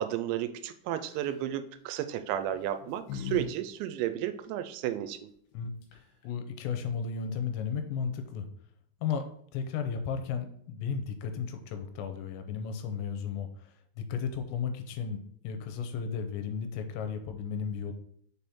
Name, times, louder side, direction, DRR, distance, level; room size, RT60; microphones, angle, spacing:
voice 1, 0.0-5.3, right 11 dB, 90° right, 11 dB, 2.9 m, -33 dB
sound 1, 1.0-1.4 2.4-3.5 3.8-3.9 5.5-5.6 5.8-6.2, left 6 dB, 65° left, 2.9 m, -39 dB
voice 2, 6.2-8.5 9.0-13.5 14.0-17.9, left 6 dB, 85° left, 7 dB, 2.9 m, -34 dB
6.4 x 3.6 x 4.2 m, 0.64 s
omnidirectional pair, 5.1 m